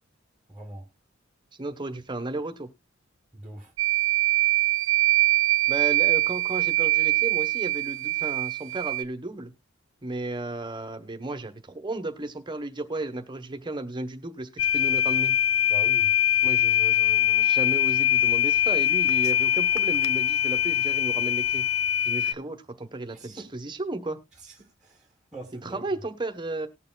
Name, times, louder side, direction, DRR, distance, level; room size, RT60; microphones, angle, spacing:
voice 1, 0.5-0.8 3.3-3.7 15.7-16.1 23.1-23.5 24.4-25.9, right 1 dB, 5° right, 1.5 m, -42 dB
voice 2, 1.6-2.7 5.7-9.5 10.0-15.3 16.4-21.6 22.0-24.2 25.6-26.7, right 2 dB, 20° right, 1.0 m, -34 dB
sound 1, 3.8-9.0, right 19 dB, 65° right, 0.5 m, -23 dB
sound 2, 14.6-22.3, left 10 dB, 85° left, 0.5 m, -23 dB
19.0 x 6.8 x 2.3 m
head